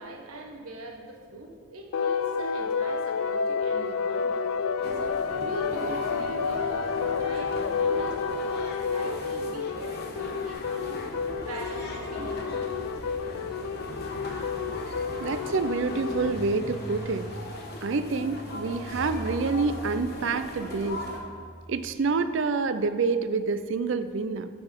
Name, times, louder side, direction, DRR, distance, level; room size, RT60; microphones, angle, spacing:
voice 1, 0.0-4.4 4.9-11.1 11.4-12.6, right 2 dB, 85° right, 1 dB, 1.2 m, -42 dB
sound 1, 1.9-16.3, left 5 dB, 75° left, 0.4 m, -30 dB
sound 2, 4.8-21.2, left 1 dB, 45° left, 1.1 m, -40 dB
sound 3, 10.5-21.9, equal, 20° right, 0.9 m, -44 dB
voice 2, 15.2-17.3 17.8-21.0 21.7-24.5, right 4 dB, 55° right, 10 dB, 0.4 m, -27 dB
12.0 x 4.2 x 5.2 m, 2.1 s
head